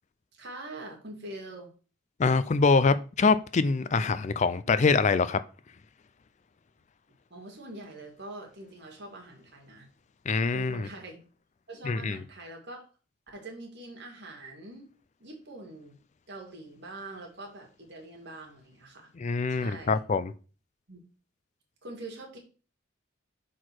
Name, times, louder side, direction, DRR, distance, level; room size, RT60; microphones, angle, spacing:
voice 1, 0.3-1.7 7.3-9.9 10.5-11.2 11.7-12.8 13.3-14.9 15.2-16.0 16.3-19.1 19.5-20.0 20.9-21.0 21.8-22.4, right 2 dB, 55° right, 2.5 m, -44 dB
voice 2, 2.2-5.4 10.3-10.9 11.8-12.2 19.2-20.3, left 4 dB, 35° left, 0.4 m, -24 dB
6.3 x 4.7 x 5.9 m
head